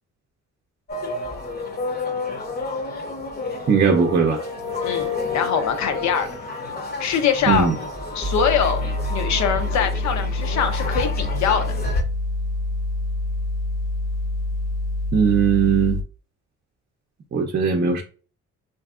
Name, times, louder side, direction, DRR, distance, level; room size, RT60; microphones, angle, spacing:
sound 1, 0.9-12.0, left 3 dB, 35° left, 0.7 m, -30 dB
voice 1, 3.7-4.4 7.5-7.7 15.1-16.0 17.3-18.0, right 6 dB, 35° right, 1 dB, 0.5 m, -19 dB
voice 2, 4.8-6.3 7.0-7.7 8.1-8.8 9.1-11.7, left 7 dB, 65° left, 8 dB, 0.7 m, -23 dB
sound 2, 8.2-16.0, left 2 dB, 5° right, 0.8 m, -26 dB
3.3 x 2.7 x 2.3 m, 0.37 s
cardioid pair, 90°, 30 cm